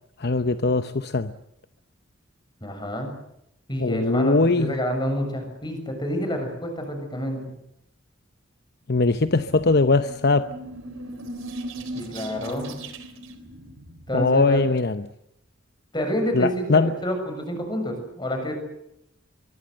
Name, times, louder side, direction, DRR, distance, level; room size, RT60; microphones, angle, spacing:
voice 1, 0.2-1.3 3.8-4.7 8.9-10.5 14.1-15.0 16.3-17.0, left 3 dB, 55° left, 10 dB, 0.8 m, -21 dB
voice 2, 2.6-3.1 3.7-7.4 12.0-12.8 14.1-14.7 15.9-18.5, equal, 20° left, 5 dB, 6.9 m, -28 dB
sound 1, 9.1-14.4, right 1 dB, 90° right, 3.8 m, -38 dB
23.5 x 23.5 x 7.8 m, 0.79 s
head